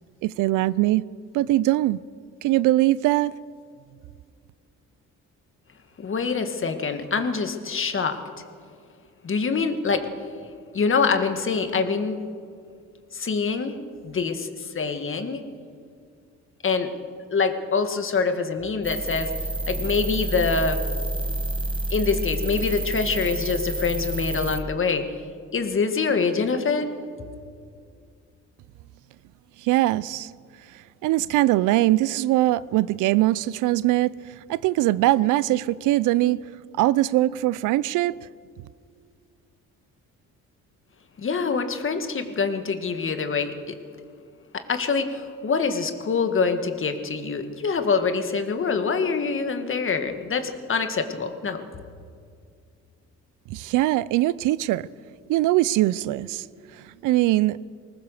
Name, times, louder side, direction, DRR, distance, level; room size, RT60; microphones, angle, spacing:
voice 1, 0.2-1.0 1.3-2.0 2.4-3.3 29.6-30.3 30.7-36.4 36.8-38.2 53.5-54.9 55.3-56.5 56.7-57.6, right 16 dB, 90° right, 0.5 m, -22 dB
voice 2, 6.0-8.2 9.2-10.1 10.7-12.2 13.1-13.7 14.0-15.4 16.6-16.9 17.3-19.3 19.7-20.8 21.9-25.1 25.5-26.9 41.2-43.8 44.5-51.6, left 5 dB, 45° left, 1.8 m, -25 dB
sound 1, 18.8-24.6, right 2 dB, 15° right, 1.6 m, -29 dB
20.0 x 19.5 x 6.7 m
cardioid pair, 90°, 30 cm